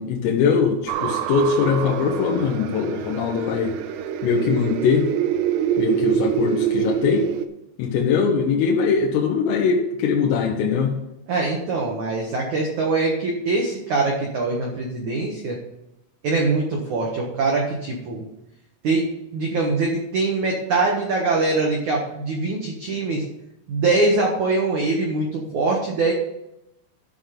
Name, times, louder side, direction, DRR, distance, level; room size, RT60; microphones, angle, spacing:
voice 1, 0.0-3.7 4.2-5.1 5.8-7.3 7.8-11.0, left 5 dB, 85° left, 0 dB, 3.8 m, -21 dB
sound 1, 0.9-7.5, right 10 dB, 90° right, 2.5 m, -26 dB
voice 2, 11.3-15.6 16.2-18.2 18.8-19.0 19.3-23.2 23.7-26.1, right 3 dB, 70° right, -1 dB, 1.8 m, -23 dB
13.5 x 5.9 x 5.3 m, 0.87 s
omnidirectional pair, 5.8 m